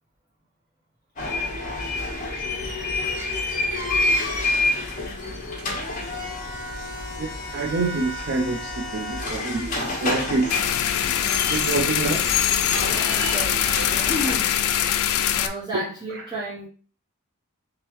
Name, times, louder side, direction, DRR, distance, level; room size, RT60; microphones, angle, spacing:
sound 1, 1.2-14.3, left 2 dB, 35° left, 1.1 m, -28 dB
voice 1, 7.2-10.6 11.5-12.3 15.7-16.3, right 3 dB, 50° right, 2 dB, 0.4 m, -27 dB
sound 2, 10.5-15.5, left 10 dB, 65° left, 0.4 m, -23 dB
voice 2, 11.0-11.4 12.8-13.7 14.1-14.6 15.3-16.7, right 1 dB, 20° right, -7 dB, 0.7 m, -32 dB
3.5 x 3.3 x 3.0 m, 0.40 s
head